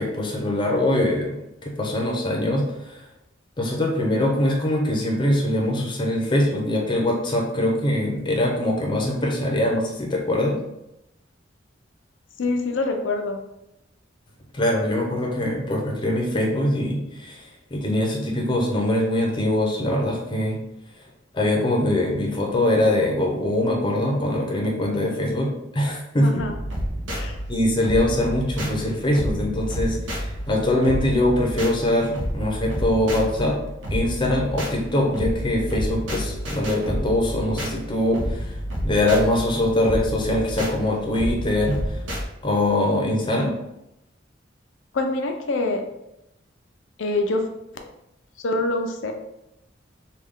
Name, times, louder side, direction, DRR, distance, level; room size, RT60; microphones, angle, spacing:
voice 1, 0.0-3.0 3.6-10.6 14.5-20.6 21.3-26.4 27.5-33.6 33.9-38.5 38.8-41.8 42.4-43.5, left 1 dB, 25° left, 0 dB, 0.7 m, -23 dB
voice 2, 12.4-13.4 26.2-26.5 27.1-27.4 44.9-45.8 47.0-47.5 47.7-47.9 48.4-49.1, left 2 dB, 85° left, 4 dB, 0.5 m, -25 dB
sound 1, 26.4-42.3, equal, 75° right, 0.8 m, -30 dB
3.3 x 2.3 x 3.6 m, 0.86 s
head